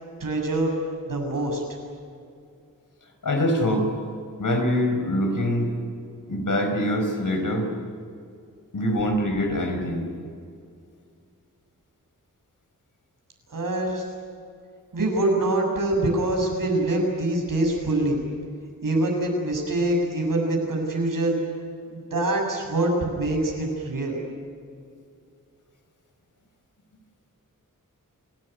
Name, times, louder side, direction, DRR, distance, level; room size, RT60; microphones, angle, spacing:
voice 1, 0.2-0.7 1.1-1.6 13.5-14.0 14.9-18.2 18.8-21.4 21.9-24.2, right 2 dB, 80° right, 0 dB, 7.4 m, -24 dB
voice 2, 3.2-3.9 4.4-5.7 6.3-7.7 8.7-10.1, left 1 dB, 70° left, 5 dB, 5.0 m, -24 dB
29.0 x 18.0 x 9.4 m, 2.4 s
wide cardioid pair, 105°, 32 cm